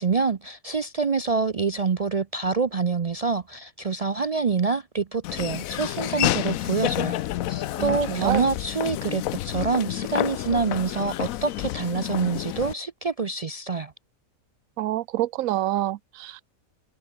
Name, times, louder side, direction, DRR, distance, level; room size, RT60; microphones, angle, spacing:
voice 1, 0.0-7.2 7.5-13.9, right 4 dB, 50° right, 0.4 m, -26 dB
Laughter / Walk footsteps, 5.2-12.7, left 14 dB, 75° left, 1.0 m, -29 dB
voice 2, 7.8-8.4 14.8-16.4, right 14 dB, 80° right, 1.0 m, -27 dB
omnidirectional pair, 1.5 m